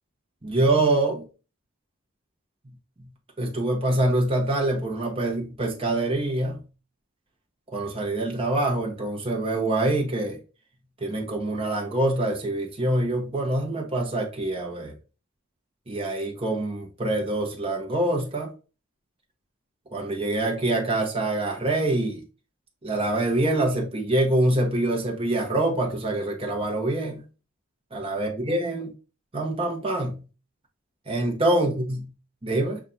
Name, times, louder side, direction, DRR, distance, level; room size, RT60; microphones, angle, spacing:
voice 1, 0.4-1.2 3.4-6.6 7.7-10.4 11.0-14.9 15.9-18.5 19.9-22.2 22.8-27.2 27.9-28.9 29.3-30.2 31.1-32.0 32.4-32.8, right 1 dB, 25° right, 0.8 m, -25 dB
5.6 x 2.4 x 3.7 m
head